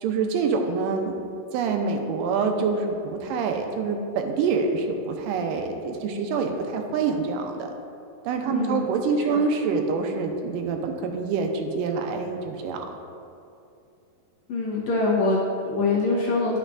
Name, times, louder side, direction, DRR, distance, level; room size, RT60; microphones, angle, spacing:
voice 1, 0.0-7.7 8.2-12.9, right 4 dB, 85° right, 4 dB, 2.2 m, -26 dB
voice 2, 8.5-8.8 9.3-9.4 14.5-16.6, left 3 dB, 65° left, -5 dB, 2.1 m, -24 dB
11.0 x 6.0 x 2.4 m, 2.6 s
omnidirectional pair, 3.9 m